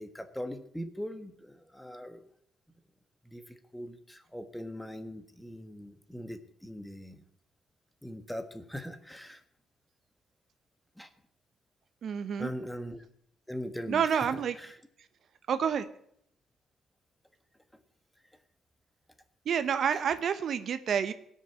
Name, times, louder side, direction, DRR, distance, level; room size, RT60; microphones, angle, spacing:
voice 1, 0.0-2.2 3.3-7.2 8.0-9.4 11.0-11.1 12.4-13.0 13.5-14.7, equal, 5° left, 9 dB, 1.4 m, -41 dB
voice 2, 12.0-12.5 13.9-14.6 15.5-15.9 19.5-21.1, right 7 dB, 60° right, 12 dB, 0.8 m, -28 dB
17.0 x 6.6 x 8.6 m, 0.69 s
cardioid pair, 90°, 0 cm